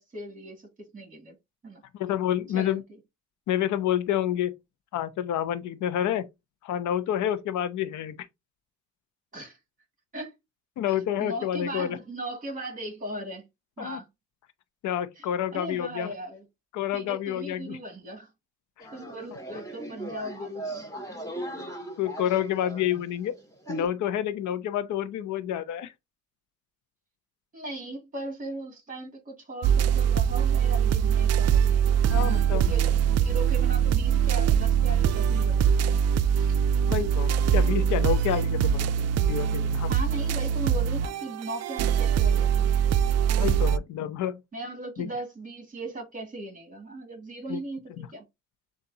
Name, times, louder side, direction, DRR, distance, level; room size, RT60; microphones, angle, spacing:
voice 1, 0.0-1.3 1.6-1.8 2.5-2.8 9.3-9.6 10.1-10.3 10.9-13.4 13.8-14.1 15.2-15.3 15.5-16.4 16.9-18.3 18.9-20.8 27.5-36.0 36.3-36.6 39.9-42.7 44.5-48.2, right 1 dB, 25° right, 2.5 m, -38 dB
voice 2, 1.9-2.8 3.5-4.5 4.9-6.3 6.6-8.2 10.8-12.0 13.8-14.0 14.8-16.1 16.7-17.8 22.0-23.3 23.7-25.9 32.1-32.7 36.9-39.9 43.4-44.4 47.5-47.6 48.0-48.1, left 10 dB, 75° left, 0.7 m, -28 dB
sound 1, 18.8-23.9, right 1 dB, 10° left, 1.9 m, -38 dB
sound 2, 29.6-43.8, right 8 dB, 55° right, 0.4 m, -23 dB
6.9 x 2.5 x 2.8 m
cardioid pair, 90°, 30 cm